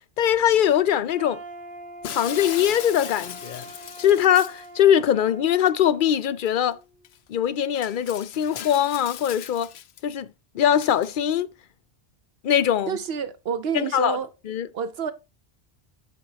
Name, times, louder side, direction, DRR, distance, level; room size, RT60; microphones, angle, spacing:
voice 1, 0.2-1.4 2.0-3.6 4.0-6.8 7.3-9.7 10.0-10.3 10.5-11.5 12.4-13.0 13.7-14.2 14.5-14.7, left 10 dB, 60° left, 0.7 m, -21 dB
sound 1, 1.2-7.1, right 2 dB, 60° right, 1.4 m, -44 dB
Shatter, 2.0-4.7 6.5-6.6 7.0-7.2 7.8-10.0 10.8-11.1, left 10 dB, 90° left, 0.9 m, -38 dB
voice 2, 12.9-14.3 14.7-15.1, right 7 dB, 75° right, 0.9 m, -28 dB
8.7 x 8.1 x 2.8 m
omnidirectional pair, 1.0 m